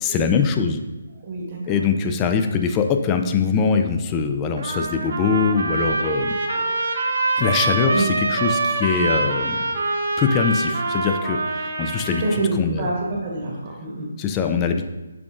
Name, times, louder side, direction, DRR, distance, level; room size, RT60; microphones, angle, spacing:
voice 1, 0.0-0.8 1.7-6.4 7.4-9.6 10.2-12.2 12.5-12.9 14.2-14.9, left 6 dB, 20° left, 6 dB, 0.3 m, -22 dB
voice 2, 1.2-1.8 7.9-8.1 12.1-14.1, right 2 dB, 40° right, -2 dB, 1.1 m, -26 dB
Trumpet, 4.6-12.5, right 3 dB, 60° right, 0.6 m, -25 dB
5.8 x 3.6 x 2.5 m, 1.1 s
figure-of-eight pair, 150°, 0 cm